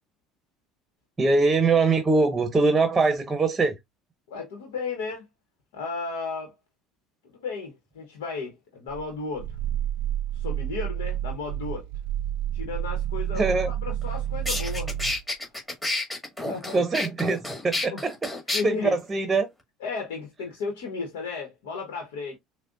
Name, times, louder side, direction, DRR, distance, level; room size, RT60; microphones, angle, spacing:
voice 1, 1.2-3.8 13.3-13.7 16.7-18.1 18.6-19.5, right 3 dB, 20° right, 0.8 m, -22 dB
voice 2, 4.3-5.2 5.7-6.5 7.3-9.6 10.3-11.9 12.5-15.0 16.4-16.8 17.9-18.0 18.5-18.9 19.8-22.3, left 4 dB, 80° left, 1.0 m, -34 dB
Growling, 8.9-15.2, right 11 dB, 80° right, 0.3 m, -30 dB
sound 1, 14.0-14.1 14.5-18.6, left 2 dB, 10° left, 1.9 m, -30 dB
6.0 x 2.2 x 2.5 m
supercardioid pair, 85°, 0 cm